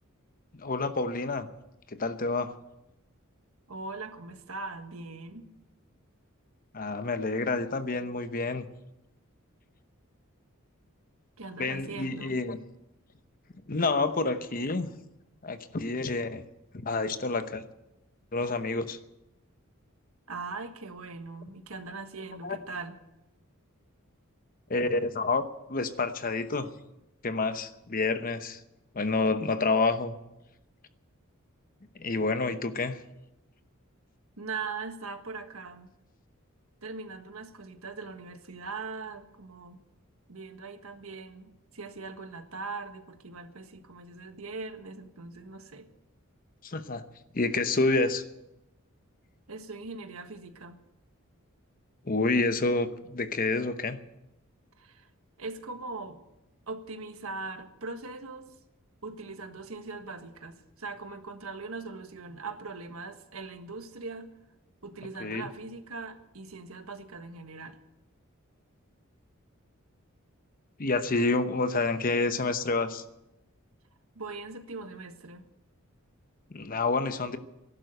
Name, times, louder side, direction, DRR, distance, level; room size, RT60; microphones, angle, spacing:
voice 1, 0.5-1.5 2.0-2.5 6.7-8.6 11.6-12.6 13.7-14.9 15.4-16.4 16.7-17.6 18.3-19.0 22.4-22.6 24.7-25.4 25.7-26.7 27.2-28.6 28.9-30.1 32.0-33.0 46.6-47.0 47.3-48.2 52.1-54.0 65.2-65.5 70.8-73.0 76.5-77.4, left 3 dB, 40° left, 10 dB, 0.9 m, -28 dB
voice 2, 3.7-5.6 11.4-12.4 20.3-23.0 34.4-35.9 36.8-39.8 40.3-45.9 49.5-50.8 54.8-55.1 55.4-56.2 56.7-58.5 59.0-64.3 64.8-67.8 74.1-75.4, right 3 dB, 85° right, 7 dB, 1.5 m, -40 dB
14.0 x 11.5 x 7.9 m, 0.91 s
head